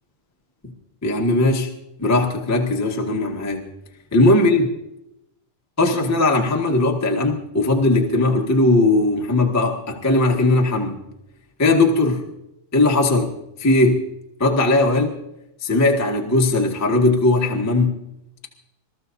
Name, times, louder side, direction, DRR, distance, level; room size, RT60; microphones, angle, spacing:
voice 1, 1.0-1.7 2.0-3.7 4.1-4.7 5.8-11.0 11.6-12.2 12.7-14.0 14.4-15.2 15.6-17.9, left 2 dB, 20° left, 0 dB, 0.4 m, -18 dB
26.5 x 14.5 x 2.7 m, 0.84 s
omnidirectional pair, 3.9 m